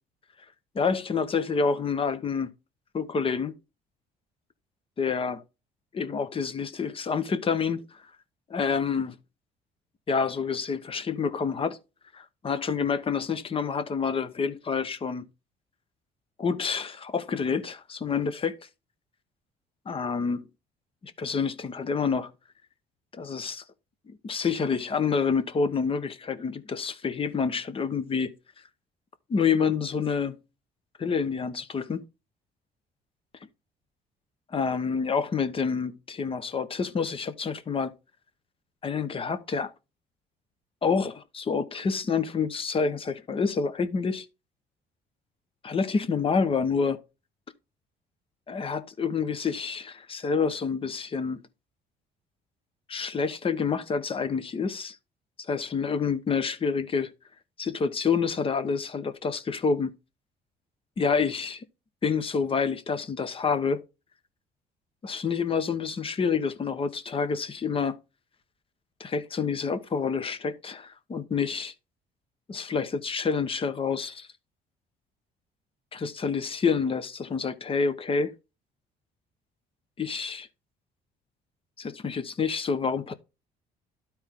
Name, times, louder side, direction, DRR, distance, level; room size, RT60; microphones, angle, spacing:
voice 1, 0.7-2.5 2.9-3.5 5.0-5.4 5.9-7.8 8.5-9.2 10.1-11.8 12.1-15.2 16.4-18.6 19.9-20.4 21.0-22.3 23.1-23.6 24.1-28.3 29.3-30.4 31.0-32.0 34.5-37.9 38.8-39.7 40.8-44.3 45.6-47.0 48.5-51.4 52.9-55.0 55.5-57.1 57.6-59.9 61.0-61.6 62.0-63.8 65.0-68.0 69.0-71.7 72.5-74.3 75.9-78.3 80.0-80.5 81.8-83.1, left 5 dB, 35° left, 1.0 m, -28 dB
12.0 x 4.5 x 3.7 m
cardioid pair, 110°, 17 cm